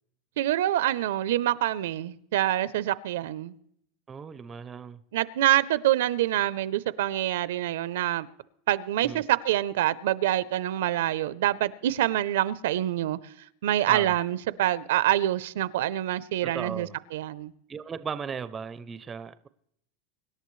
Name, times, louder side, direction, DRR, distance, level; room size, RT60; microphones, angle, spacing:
voice 1, 0.4-3.5 5.1-8.3 8.7-13.2 13.6-17.5, right 13 dB, 80° right, 0.6 m, -26 dB
voice 2, 4.1-5.0 9.0-9.2 13.9-14.2 16.4-17.0 17.7-19.5, right 6 dB, 15° right, 0.5 m, -37 dB
25.0 x 11.0 x 3.2 m
supercardioid pair, 165°, 0 cm